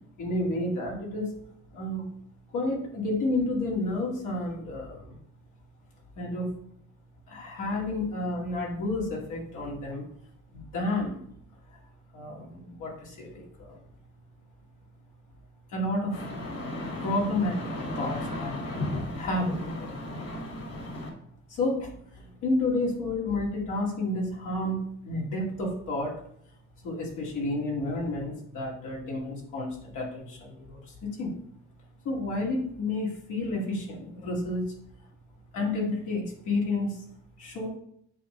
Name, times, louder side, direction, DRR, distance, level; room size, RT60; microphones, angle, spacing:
voice 1, 0.2-1.3 1.7-2.1 2.5-5.2 6.2-6.5 7.3-10.0 10.5-11.2 12.1-13.8 15.7-16.2 17.0-17.7 18.0-19.9 21.5-26.1 26.8-31.3 32.0-34.6 35.5-37.0 37.4-37.7, left 2 dB, 85° left, -3 dB, 2.4 m, -31 dB
sound 1, 16.1-21.1, left 1 dB, 55° left, 2.3 m, -35 dB
7.6 x 5.2 x 3.3 m, 0.68 s
cardioid pair, 90°, 30 cm